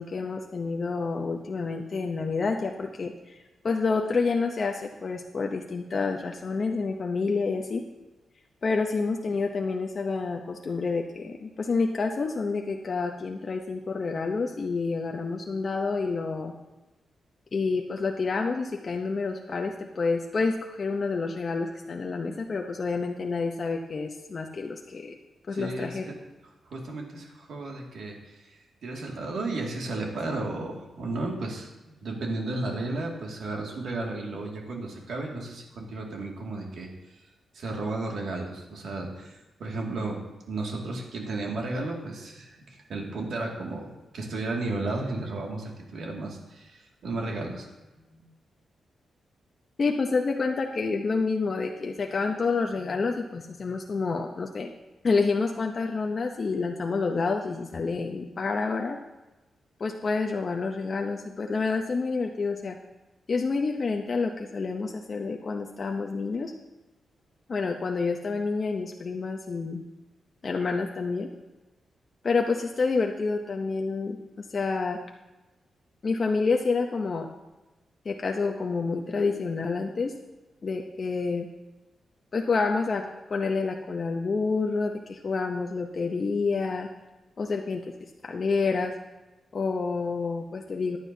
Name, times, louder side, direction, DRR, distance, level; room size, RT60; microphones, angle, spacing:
voice 1, 0.0-3.4 3.6-7.8 8.6-16.5 17.5-25.1 25.5-26.1 49.8-54.7 55.0-59.0 59.8-62.8 63.3-66.5 67.5-69.8 70.4-71.3 72.2-75.0 76.0-77.3 78.0-80.1 80.6-81.5 82.3-83.0 83.3-86.9 87.4-87.8 88.2-88.9 89.5-91.0, left 4 dB, 40° left, 2 dB, 0.7 m, -28 dB
voice 2, 25.5-26.1 26.7-31.7 32.0-36.9 37.5-47.7 48.1-48.2, right 2 dB, 75° right, 0 dB, 2.1 m, -34 dB
15.0 x 10.0 x 2.7 m, 1.1 s
wide cardioid pair, 130°, 0 cm